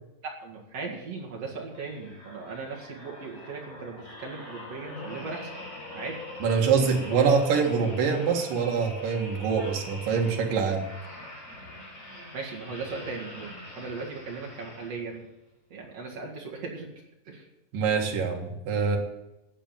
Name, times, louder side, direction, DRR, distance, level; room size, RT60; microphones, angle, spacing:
voice 1, 0.2-5.5 5.9-6.2 12.3-15.2 15.7-16.9 17.2-17.5, right 4 dB, 50° right, -2 dB, 2.9 m, -38 dB
sound 1, 1.7-15.3 15.8-16.0, left 1 dB, 20° left, 4.6 m, -43 dB
voice 2, 6.4-10.9 17.7-19.0, right 5 dB, 75° right, 2 dB, 3.3 m, -25 dB
10.0 x 8.6 x 9.0 m, 0.92 s
omnidirectional pair, 4.0 m